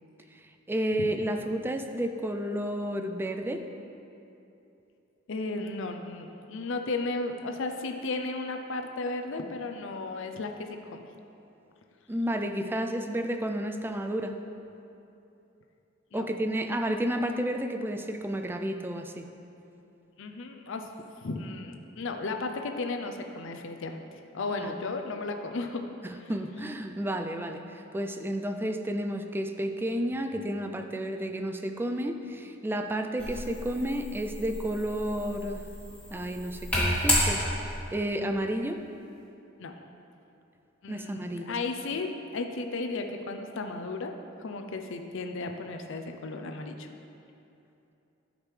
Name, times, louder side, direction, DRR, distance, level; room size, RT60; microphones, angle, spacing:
voice 1, 0.7-3.6 12.1-14.4 16.1-19.3 24.6-24.7 26.0-35.7 36.1-37.4 37.9-38.8 40.9-41.6, right 1 dB, 10° right, 6 dB, 0.3 m, -31 dB
voice 2, 5.3-11.0 16.1-16.3 20.2-20.9 21.2-25.9 26.2-26.3 39.6-39.8 40.8-44.1 44.4-46.9, left 3 dB, 65° left, 5 dB, 0.6 m, -34 dB
sound 1, 33.2-37.9, equal, 5° left, 1.8 m, -31 dB
11.5 x 5.2 x 3.3 m, 2.8 s
head